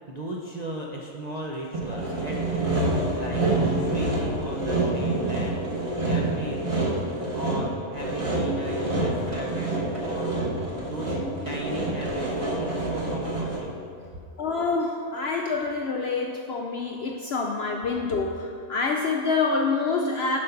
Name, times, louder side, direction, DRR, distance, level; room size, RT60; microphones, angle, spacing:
voice 1, 0.1-3.4 3.8-5.6 5.9-11.2 11.4-13.8, right 1 dB, 45° right, -2 dB, 0.5 m, -37 dB
Sawing, 1.7-13.8, right 2 dB, 25° right, 1.1 m, -27 dB
voice 2, 14.4-20.4, left 4 dB, 65° left, 2 dB, 0.6 m, -26 dB
7.6 x 5.3 x 5.8 m, 2.3 s
omnidirectional pair, 1.5 m